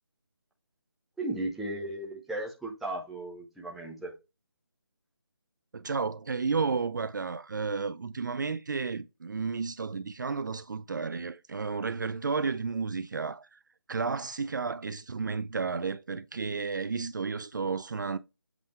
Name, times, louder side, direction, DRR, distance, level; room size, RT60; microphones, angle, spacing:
voice 1, 1.2-4.1, right 1 dB, ahead, 0.9 m, -35 dB
voice 2, 5.7-13.6 13.9-18.2, right 4 dB, 50° right, 0.5 m, -32 dB
7.9 x 3.5 x 4.3 m
figure-of-eight pair, 160°, 13 cm